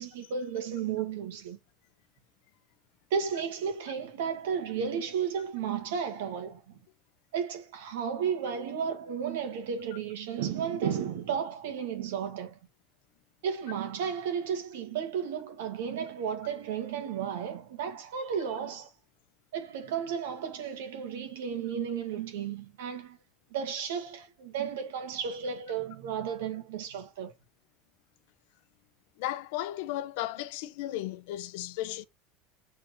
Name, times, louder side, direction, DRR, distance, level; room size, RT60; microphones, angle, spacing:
voice 1, 0.0-1.6 3.1-6.8 7.3-12.6 13.4-18.9 19.5-23.2 23.5-27.4, right 7 dB, 85° right, 2.0 m, -33 dB
voice 2, 29.2-32.0, left 14 dB, 75° left, 0.7 m, -35 dB
7.4 x 3.9 x 3.2 m
supercardioid pair, 125°, 0 cm